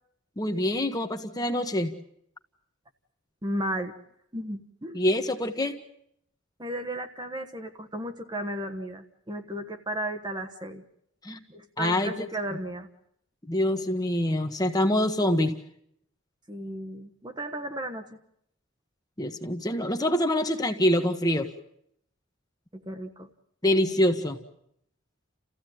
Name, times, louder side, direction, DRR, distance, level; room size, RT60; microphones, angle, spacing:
voice 1, 0.4-1.9 4.9-5.8 11.2-11.4 11.8-12.3 13.4-15.6 19.2-21.5 23.6-24.4, left 1 dB, 20° left, 6 dB, 1.4 m, -25 dB
voice 2, 3.4-3.9 4.3-5.0 6.6-10.8 11.5-12.9 16.5-18.0 22.7-23.3, right 1 dB, 20° right, 6 dB, 1.3 m, -34 dB
29.5 x 15.5 x 9.3 m, 0.72 s
head